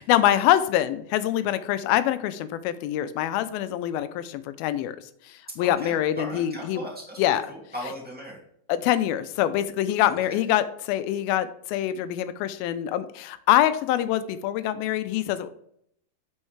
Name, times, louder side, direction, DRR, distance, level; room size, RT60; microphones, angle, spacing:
voice 1, 0.1-5.0 5.6-6.8 7.2-7.4 8.7-15.5, left 12 dB, 85° left, 12 dB, 2.4 m, -24 dB
voice 2, 5.6-8.4 10.0-10.4, equal, 5° right, -4 dB, 1.3 m, -39 dB
8.7 x 6.3 x 3.3 m, 0.70 s
omnidirectional pair, 4.2 m